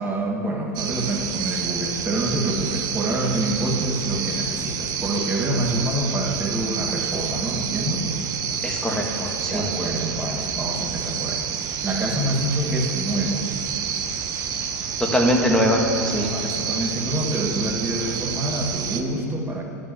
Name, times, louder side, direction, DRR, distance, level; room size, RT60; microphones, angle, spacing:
voice 1, 0.0-8.1 9.5-11.5 11.8-13.5 16.3-19.6, right 1 dB, 20° right, 1 dB, 2.1 m, -26 dB
sound 1, 0.8-19.0, right 7 dB, 45° right, 1.0 m, -29 dB
voice 2, 8.6-9.7 15.0-16.3, equal, 5° left, 0 dB, 2.1 m, -22 dB
12.0 x 6.7 x 8.1 m, 3.0 s
hypercardioid pair, 90°, 9 cm